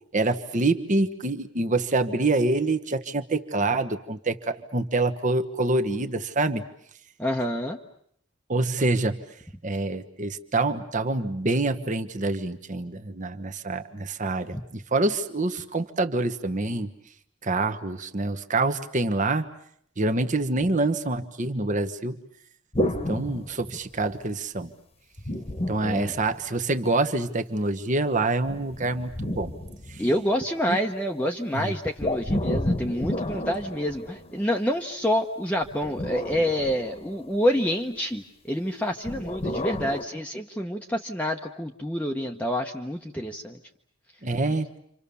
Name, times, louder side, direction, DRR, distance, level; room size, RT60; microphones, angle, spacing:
voice 1, 0.1-6.6 8.5-9.2 9.6-16.9 17.4-19.5 20.0-22.2 23.1-24.7 25.7-29.5 29.9-30.0 30.7-30.8 31.5-31.7 44.2-44.7, right 2 dB, 40° right, 8 dB, 1.3 m, -26 dB
voice 2, 7.2-7.8 14.5-14.6 25.8-26.1 30.0-43.6, equal, 5° left, 2 dB, 1.0 m, -27 dB
sound 1, 22.7-24.2 25.2-26.8 28.5-30.5 32.0-34.6 35.6-37.5 39.1-40.0, left 1 dB, 30° left, 1.4 m, -31 dB
29.0 x 26.0 x 7.0 m, 0.66 s
head